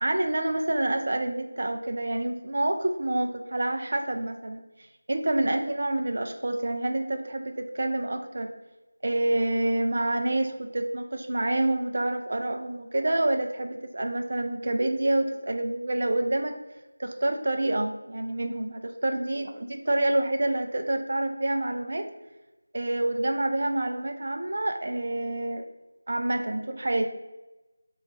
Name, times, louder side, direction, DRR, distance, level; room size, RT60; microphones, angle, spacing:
voice 1, 0.0-4.6 5.1-8.5 9.0-16.6 17.0-22.1 22.7-25.7 26.1-27.0, right 1 dB, 45° right, 5 dB, 0.4 m, -27 dB
3.2 x 3.0 x 3.9 m, 1.0 s
figure-of-eight pair, 170°, 0 cm